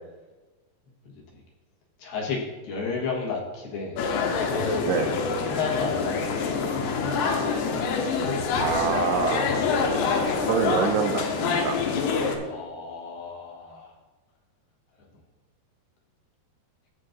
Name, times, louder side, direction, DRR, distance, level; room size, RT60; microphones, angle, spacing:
voice 1, 2.0-4.0 5.4-6.5 12.4-14.0, left 4 dB, 65° left, -2 dB, 2.9 m, -32 dB
sound 1, 4.0-12.4, left 5 dB, 85° left, 3.1 m, -26 dB
voice 2, 8.6-9.5 10.5-11.8, right 6 dB, 80° right, 5 dB, 2.6 m, -25 dB
14.0 x 8.4 x 2.6 m, 1.2 s
omnidirectional pair, 5.0 m